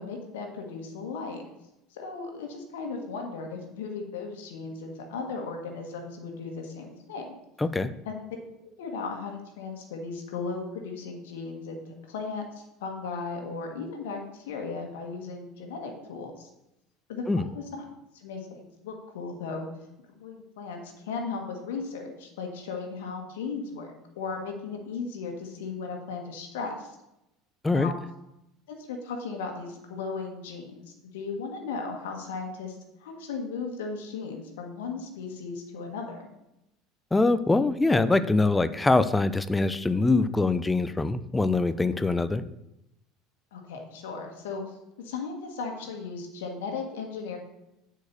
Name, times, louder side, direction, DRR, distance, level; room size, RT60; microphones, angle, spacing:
voice 1, 0.0-1.4 1.9-7.3 8.0-8.4 8.8-16.5 17.1-19.7 20.1-27.0 27.7-27.9 28.7-30.8 31.1-36.3 43.5-44.6 45.0-47.4, left 4 dB, 65° left, 3 dB, 1.5 m, -36 dB
voice 2, 7.6-7.9 17.3-17.5 27.6-27.9 37.1-42.4, left 3 dB, 10° left, 13 dB, 0.5 m, -23 dB
8.1 x 4.7 x 6.6 m, 0.87 s
figure-of-eight pair, 70°, 0 cm